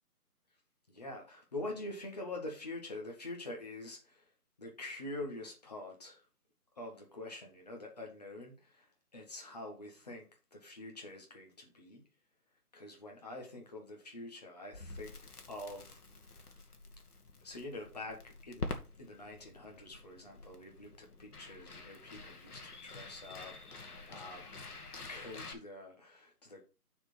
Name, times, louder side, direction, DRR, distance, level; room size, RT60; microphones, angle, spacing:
voice 1, 0.9-4.3 4.6-6.2 6.7-12.1 12.7-15.2 15.5-16.0 16.4-16.6 17.4-18.7 19.0-24.5 25.0-26.6, left 2 dB, 25° left, 1.7 m, -46 dB
Crackle, 14.7-25.5, left 3 dB, 75° left, 1.8 m, -47 dB
6.6 x 4.5 x 5.9 m
figure-of-eight pair, 170°, 46 cm